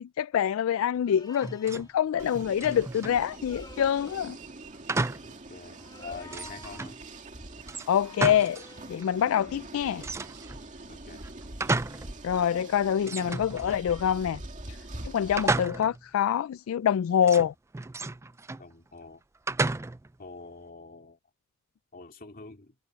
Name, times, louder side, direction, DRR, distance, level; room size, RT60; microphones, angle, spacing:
voice 1, 0.0-4.4 7.9-8.6 8.9-10.0 12.2-14.4 14.7-14.8 15.0-17.5, left 9 dB, 75° left, 0.3 m, -26 dB
sound 1, 1.0-1.9 3.3-4.4 5.8-7.0 8.0-9.0, left 2 dB, 20° left, 4.7 m, -50 dB
sound 2, 1.3-1.9 2.2-3.2 4.9-5.4 5.8-5.9 6.3-7.0 7.7-8.7 9.0-9.1 10.0-10.6 11.2-12.1 12.5-12.6 13.0-14.1 15.4-16.1 17.2-18.7 19.5-20.2, right 3 dB, 15° right, 0.4 m, -32 dB
sound 3, 2.2-15.7, right 2 dB, 35° right, 2.3 m, -44 dB
voice 2, 5.2-7.0 10.9-11.2 18.6-19.2 20.2-21.2 21.9-22.8, left 4 dB, 45° left, 2.8 m, -45 dB
head